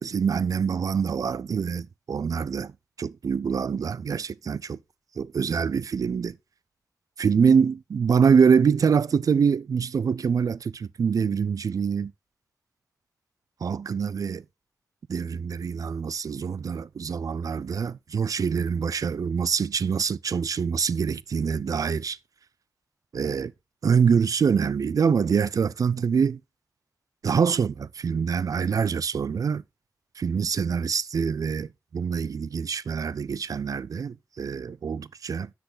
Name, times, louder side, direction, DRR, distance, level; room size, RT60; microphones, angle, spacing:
voice 1, 0.0-2.7 3.0-4.8 5.2-6.4 7.2-12.1 13.6-14.4 15.1-22.2 23.1-23.5 23.8-26.4 27.2-29.6 30.2-35.5, right 6 dB, 60° right, 0.4 m, -25 dB
8.2 x 6.3 x 3.9 m
cardioid pair, 55°, 7 cm